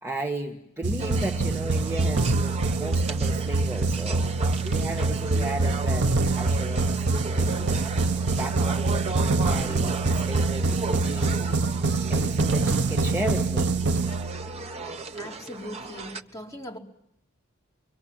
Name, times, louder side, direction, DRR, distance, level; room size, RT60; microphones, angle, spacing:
voice 1, 0.0-4.2 4.6-7.8 8.2-11.4 12.1-13.7, right 1 dB, 10° right, 2 dB, 1.6 m, -35 dB
sound 1, 0.8-14.7, right 3 dB, 55° right, 1.0 m, -25 dB
sound 2, 1.0-16.2, right 3 dB, 30° right, 1.3 m, -36 dB
voice 2, 15.1-16.8, left 1 dB, 15° left, -2 dB, 4.8 m, -40 dB
25.5 x 24.0 x 9.0 m, 0.79 s
head